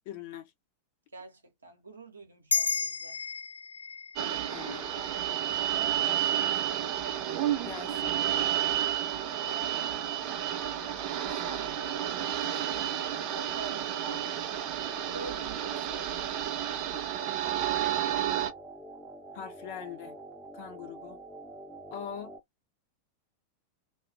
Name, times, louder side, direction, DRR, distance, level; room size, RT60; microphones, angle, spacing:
voice 1, 0.1-0.5 4.2-4.9 7.6-8.2 19.3-20.2 20.5-21.2 21.9-22.3, left 9 dB, 50° left, 0.7 m, -42 dB
voice 2, 1.1-3.2 5.6-6.9 9.4-10.4 11.1-14.7 15.1-16.2, right 4 dB, 75° right, 0.8 m, -46 dB
sound 1, 2.5-7.2, left 5 dB, 75° left, 0.3 m, -35 dB
sound 2, 4.2-18.5, right 11 dB, 40° right, 0.5 m, -31 dB
sound 3, 4.5-22.4, right 1 dB, 5° left, 0.9 m, -47 dB
2.3 x 2.2 x 2.9 m
figure-of-eight pair, 90°, 0 cm